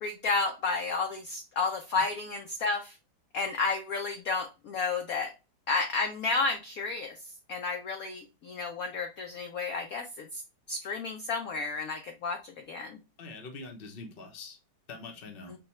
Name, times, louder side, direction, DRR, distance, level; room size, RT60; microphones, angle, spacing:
voice 1, 0.0-2.9 3.3-5.3 5.7-7.1 7.5-10.4 10.7-13.0, left 4 dB, 65° left, 0.9 m, -31 dB
voice 2, 13.2-14.6 14.9-15.6, left 3 dB, 40° left, 0.8 m, -44 dB
6.4 x 2.3 x 3.0 m
omnidirectional pair, 2.1 m